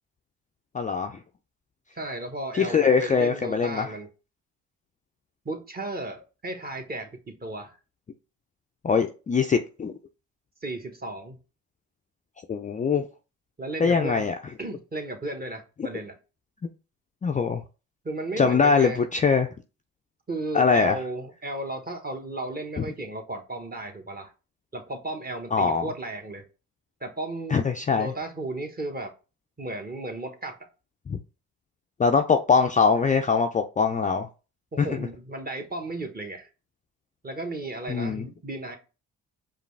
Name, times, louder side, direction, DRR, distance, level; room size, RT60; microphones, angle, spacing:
voice 1, 0.7-1.1 2.5-3.9 8.8-9.9 12.5-13.0 13.8-14.3 17.2-17.6 18.4-19.5 20.5-21.0 22.8-22.9 25.5-25.8 27.5-28.1 31.1-31.2 32.0-34.3 34.8-35.1 37.9-38.2, left 5 dB, 20° left, 0.4 m, -22 dB
voice 2, 2.0-4.1 5.4-7.8 10.6-11.4 13.6-14.3 14.6-16.2 18.0-19.0 20.3-24.3 24.7-26.4 27.0-29.1 29.6-30.7 34.7-36.5 37.2-38.8, right 2 dB, 25° right, 1.1 m, -34 dB
5.0 x 2.4 x 3.3 m
supercardioid pair, 60°, 36 cm